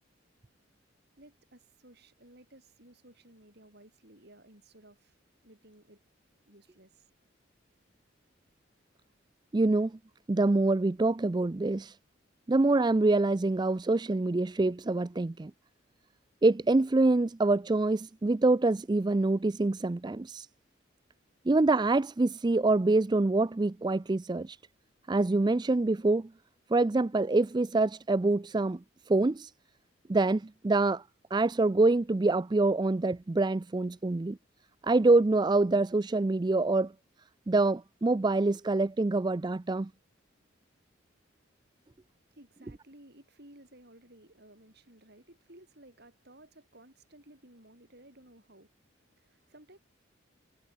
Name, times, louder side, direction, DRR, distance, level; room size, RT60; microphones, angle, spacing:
voice 1, 1.2-5.1 5.4-6.0 6.5-7.1 42.3-49.8, right 1 dB, 55° right, 7.6 m, -56 dB
voice 2, 9.5-10.0 10.3-12.0 12.5-15.5 16.4-20.5 21.5-24.6 25.1-26.3 26.7-29.5 30.1-31.0 31.3-34.4 34.8-36.9 37.5-39.9, right 2 dB, 20° right, 0.4 m, -26 dB
head